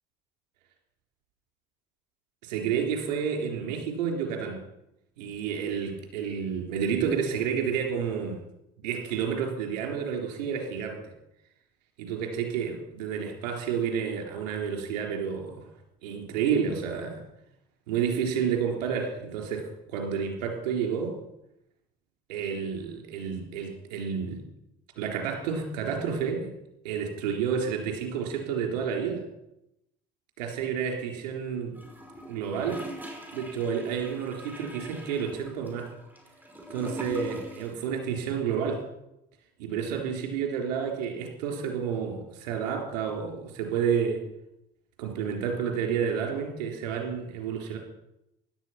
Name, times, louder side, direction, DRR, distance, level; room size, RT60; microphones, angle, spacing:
voice 1, 2.4-4.6 5.2-8.4 8.8-11.1 12.0-15.7 16.0-17.2 17.9-21.1 22.3-24.4 25.0-26.5 26.8-29.2 30.4-31.7 32.3-32.8 33.3-35.9 36.7-38.8 39.6-44.2 45.0-47.8, right 7 dB, 85° right, 2 dB, 3.8 m, -30 dB
Gurgling / Toilet flush, 31.7-37.8 38.1-38.2, equal, 10° right, 5.6 m, -42 dB
16.5 x 11.5 x 5.9 m, 0.85 s
hypercardioid pair, 60°, 21 cm